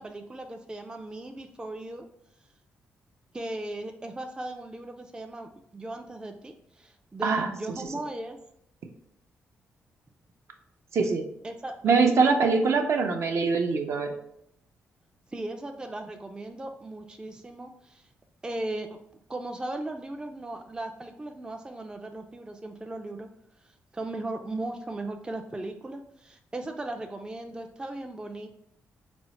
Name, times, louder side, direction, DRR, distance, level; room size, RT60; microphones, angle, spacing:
voice 1, 0.0-2.1 3.3-8.4 11.4-12.4 15.3-18.0 18.4-23.3 23.9-28.5, right 2 dB, 15° right, 4 dB, 0.3 m, -37 dB
voice 2, 11.8-14.1, right 4 dB, 60° right, 4 dB, 0.6 m, -23 dB
4.3 x 2.0 x 4.1 m, 0.72 s
cardioid pair, 75°, 5 cm